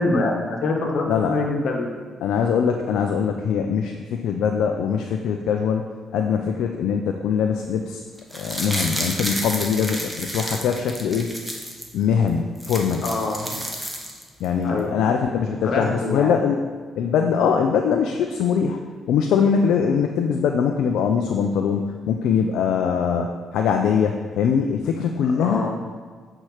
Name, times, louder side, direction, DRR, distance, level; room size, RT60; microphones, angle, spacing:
voice 1, 0.0-1.9 13.0-13.6 14.6-14.9 15.6-16.3 25.4-25.8, left 2 dB, 65° left, 1 dB, 1.3 m, -24 dB
voice 2, 1.1-1.4 2.2-5.8 6.1-8.0 8.3-11.3 11.9-13.1 14.4-16.6 17.0-18.8 19.1-25.7, left 7 dB, 80° left, 4 dB, 0.4 m, -22 dB
sound 1, 8.2-11.9 12.3-12.4 12.5-14.4 14.8-14.9, equal, 5° right, 1.2 m, -31 dB
8.0 x 4.3 x 4.9 m, 1.6 s
cardioid pair, 90°, 0 cm